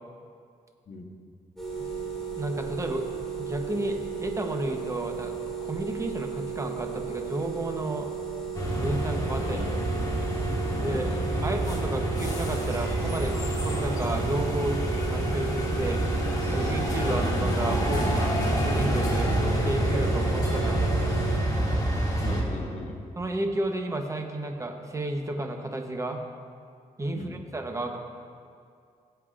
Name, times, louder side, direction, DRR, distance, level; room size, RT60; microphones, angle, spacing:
sound 1, 1.6-21.4, right 7 dB, 5° left, 2.3 m, -35 dB
voice 1, 2.4-3.1 3.4-5.4 5.6-8.1 8.8-9.7 10.8-11.1 11.4-16.0 16.5-19.4 19.6-21.2 23.2-26.2 27.0-28.0, right 1 dB, 20° right, 4 dB, 1.0 m, -32 dB
sound 2, 8.6-22.4, right 1 dB, 25° left, 1.6 m, -27 dB
voice 2, 10.8-11.5 17.1-17.2 22.2-23.0 27.1-27.4, left 3 dB, 55° left, 2 dB, 1.2 m, -38 dB
sound 3, 12.2-18.1, right 2 dB, 50° right, 1.7 m, -42 dB
17.0 x 7.8 x 2.5 m, 2.3 s
cardioid pair, 105°, 14 cm